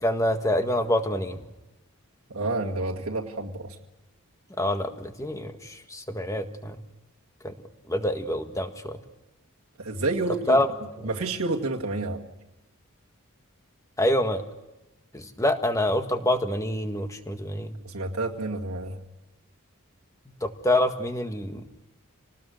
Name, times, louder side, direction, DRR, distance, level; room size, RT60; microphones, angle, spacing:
voice 1, 0.0-1.4 4.6-6.8 7.4-7.5 7.9-9.0 10.5-10.7 11.0-11.1 14.0-14.4 15.1-17.8 20.4-21.7, left 1 dB, 15° left, 6 dB, 1.7 m, -26 dB
voice 2, 2.3-3.8 9.8-10.6 11.0-12.2 17.8-19.0, right 2 dB, 85° right, -1 dB, 2.1 m, -29 dB
27.5 x 19.0 x 6.5 m, 1.0 s
head